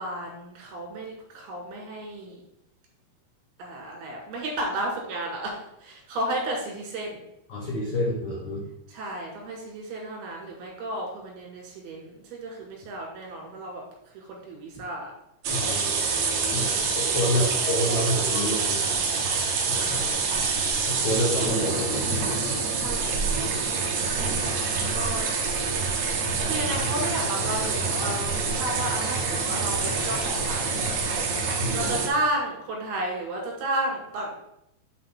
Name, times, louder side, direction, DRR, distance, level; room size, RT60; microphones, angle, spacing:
voice 1, 0.0-2.4 3.6-7.2 8.9-13.8 14.1-15.1 16.5-18.1 18.6-19.5 19.9-20.3 22.7-25.3 25.9-34.3, right 1 dB, 80° right, -1 dB, 3.8 m, -33 dB
voice 2, 7.5-8.7 15.5-16.0 16.5-18.8 19.7-20.1 20.8-22.3 31.6-31.9, equal, 80° left, -3 dB, 1.2 m, -28 dB
sound 1, 15.4-32.1, right 4 dB, 65° right, 2.0 m, -26 dB
9.4 x 4.4 x 3.6 m, 0.81 s
omnidirectional pair, 4.4 m